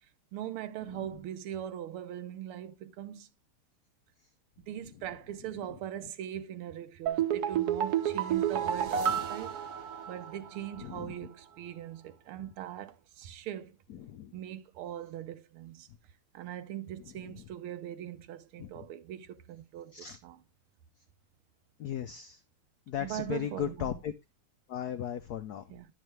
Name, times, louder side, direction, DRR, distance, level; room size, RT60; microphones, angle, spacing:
voice 1, 0.3-3.3 4.6-9.6 10.1-13.8 14.3-15.9 16.3-20.4 23.0-24.0 25.7-25.9, right 11 dB, 80° right, 1.6 m, -41 dB
sound 1, 7.1-10.5 10.8-10.9, right 9 dB, 60° right, 1.1 m, -30 dB
voice 2, 21.8-22.4 22.9-24.1 24.7-25.6, left 9 dB, 85° left, 0.8 m, -36 dB
10.5 x 6.7 x 3.2 m
omnidirectional pair, 2.4 m